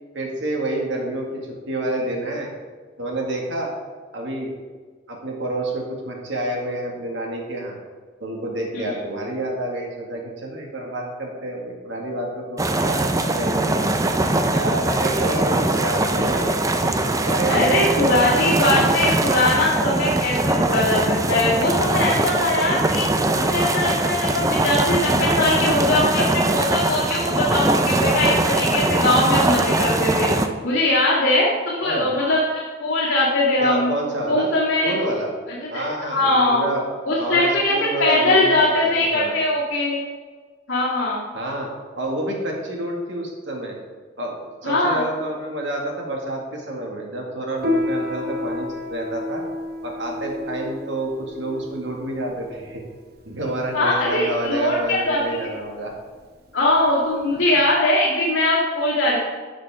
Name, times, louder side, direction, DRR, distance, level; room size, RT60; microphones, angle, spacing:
voice 1, 0.1-2.5 3.0-3.8 4.1-4.5 5.1-7.8 8.2-13.0 13.3-13.9 14.5-16.9 17.3-18.3 31.8-32.1 33.6-34.5 34.8-35.3 35.7-36.8 37.2-38.6 38.8-39.4 41.3-43.8 44.2-49.4 49.8-52.8 53.2-55.9, right 1 dB, 70° right, -1 dB, 2.1 m, -28 dB
sound 1, 12.6-30.5, right 2 dB, 15° right, 0.5 m, -21 dB
voice 2, 14.9-15.4 17.5-23.1 23.3-26.3 26.5-30.3 30.6-33.9 34.3-34.9 35.6-36.6 37.1-40.0 40.7-41.3 44.6-45.0 53.7-55.5 56.5-59.2, left 1 dB, 80° left, -8 dB, 2.3 m, -21 dB
Piano, 47.6-57.6, left 2 dB, 50° right, 1.1 m, -31 dB
11.5 x 6.5 x 3.7 m, 1.4 s
head